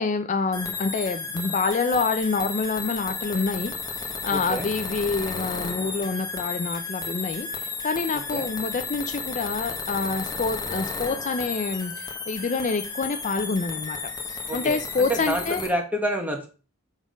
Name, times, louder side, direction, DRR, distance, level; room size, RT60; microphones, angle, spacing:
voice 1, 0.0-3.7 4.2-14.0 14.2-15.6, left 4 dB, 35° left, 8 dB, 0.5 m, -27 dB
sound 1, 0.5-15.7, left 4 dB, 20° left, 1.1 m, -33 dB
voice 2, 4.3-4.7 8.3-8.5 14.5-16.5, right 1 dB, 10° right, 3 dB, 1.4 m, -28 dB
7.2 x 3.8 x 5.1 m, 0.35 s
head